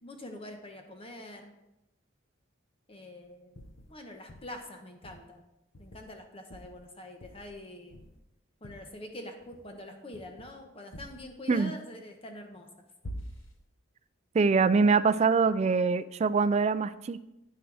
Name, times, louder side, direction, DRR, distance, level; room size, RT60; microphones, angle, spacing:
voice 1, 0.0-1.5 2.9-3.6 3.9-5.4 5.8-8.0 8.6-12.7, left 1 dB, 30° left, 4 dB, 1.1 m, -45 dB
sound 1, 3.6-3.9 4.3-4.6 5.0-5.3 5.7-6.2 6.5-6.8 7.2-7.6 7.9-8.3 8.6-8.9 9.4-9.8 10.1-10.6 10.9-11.3 13.0-13.6, equal, 85° left, 1.1 m, -46 dB
voice 2, 14.3-17.2, right 4 dB, 35° right, 13 dB, 0.3 m, -24 dB
9.8 x 8.9 x 3.4 m, 0.91 s
head